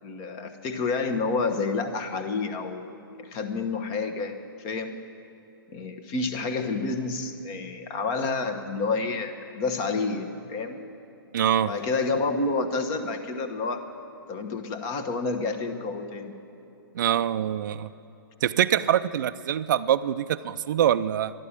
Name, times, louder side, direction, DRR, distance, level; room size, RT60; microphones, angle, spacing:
voice 1, 0.0-2.9 3.2-5.0 5.7-10.8 11.6-13.9 14.3-16.3, left 3 dB, 30° left, 7 dB, 1.1 m, -29 dB
voice 2, 11.3-11.7 16.9-17.9 18.4-21.3, right 10 dB, 55° right, 12 dB, 0.4 m, -24 dB
12.0 x 11.5 x 8.6 m, 3.0 s
hypercardioid pair, 130°, 12 cm